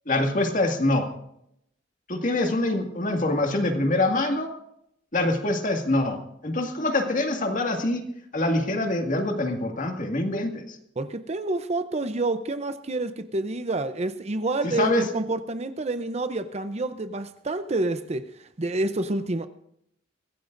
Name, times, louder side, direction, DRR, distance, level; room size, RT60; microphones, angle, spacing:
voice 1, 0.1-1.1 2.1-4.5 5.1-8.0 8.3-10.8 14.6-15.0, left 2 dB, 45° left, 4 dB, 2.1 m, -25 dB
voice 2, 11.0-19.5, right 2 dB, 35° right, 11 dB, 0.7 m, -28 dB
23.5 x 16.0 x 2.6 m, 0.75 s
head